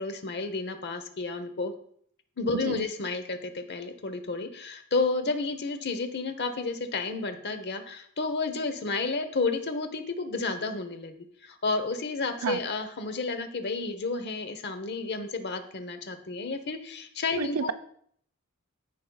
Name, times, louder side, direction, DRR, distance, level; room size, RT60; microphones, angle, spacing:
voice 1, 0.0-1.7 2.4-11.2 11.4-17.7, left 3 dB, 50° left, 8 dB, 0.9 m, -31 dB
voice 2, 17.4-17.7, right 6 dB, 80° right, 11 dB, 0.5 m, -30 dB
15.0 x 5.3 x 2.3 m, 0.63 s
head